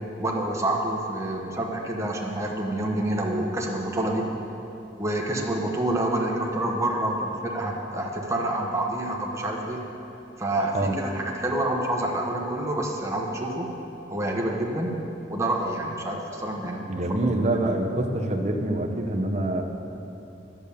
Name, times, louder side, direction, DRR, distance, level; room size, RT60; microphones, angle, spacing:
voice 1, 0.2-4.3 5.0-9.8 10.4-13.7 14.1-14.9 15.3-17.2 17.5-17.7, right 1 dB, 15° right, -1 dB, 1.1 m, -27 dB
voice 2, 16.9-19.6, right 1 dB, 40° right, 2 dB, 0.9 m, -25 dB
10.5 x 7.2 x 7.0 m, 2.9 s
head